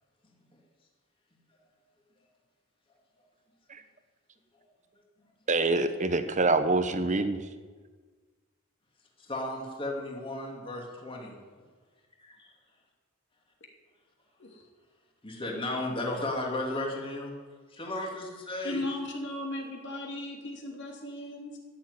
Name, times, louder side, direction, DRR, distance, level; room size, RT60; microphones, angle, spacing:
voice 1, 5.5-7.4, right 3 dB, 35° right, 9 dB, 1.0 m, -26 dB
voice 2, 9.2-11.4 15.2-17.3 17.7-18.8, left 1 dB, 25° left, 0 dB, 2.6 m, -34 dB
voice 3, 18.6-21.6, left 1 dB, 55° left, 1 dB, 2.9 m, -36 dB
14.5 x 7.5 x 9.8 m, 1.5 s
head